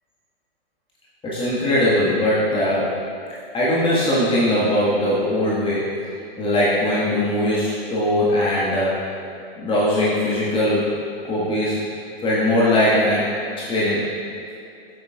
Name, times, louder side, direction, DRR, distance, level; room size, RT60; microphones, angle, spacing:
voice 1, 1.2-2.9 3.5-5.9 6.4-8.9 9.6-10.9 11.3-11.8 12.2-13.3 13.7-14.0, left 1 dB, 15° left, -9 dB, 1.4 m, -20 dB
8.1 x 7.3 x 2.3 m, 2.6 s
figure-of-eight pair, 110°, 31 cm